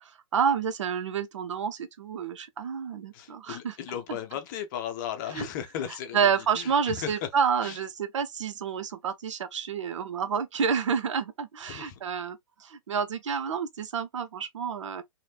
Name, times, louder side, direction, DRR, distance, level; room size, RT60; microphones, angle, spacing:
voice 1, 0.0-3.8 4.1-4.2 5.3-5.5 6.1-15.0, right 7 dB, 60° right, 0.6 m, -29 dB
voice 2, 3.1-7.3 7.6-7.8 11.6-12.0, left 9 dB, 35° left, 0.7 m, -36 dB
3.2 x 2.8 x 2.4 m
figure-of-eight pair, 115°, 18 cm